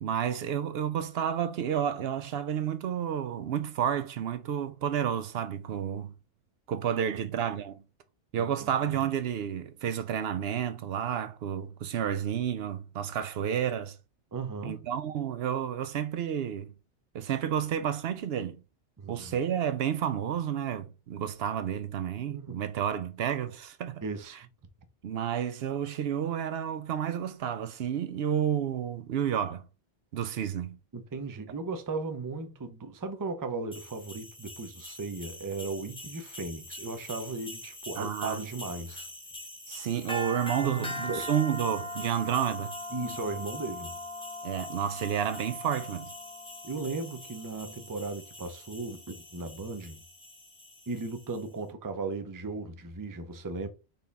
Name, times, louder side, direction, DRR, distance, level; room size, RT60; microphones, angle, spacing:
voice 1, 0.0-6.1 6.7-7.7 8.3-14.0 14.6-16.7 17.1-18.6 19.1-24.0 25.0-29.6 30.1-30.8 38.0-38.4 39.7-42.7 44.4-46.1, right 9 dB, 75° right, 0.8 m, -30 dB
voice 2, 14.3-14.8 19.0-19.4 22.3-22.6 24.0-24.4 30.9-39.1 40.6-41.3 42.9-44.0 46.6-50.0 50.9-53.7, right 3 dB, 25° right, 0.5 m, -36 dB
sound 1, 33.7-51.4, left 1 dB, 5° left, 1.1 m, -42 dB
4.2 x 3.6 x 3.5 m
omnidirectional pair, 1.1 m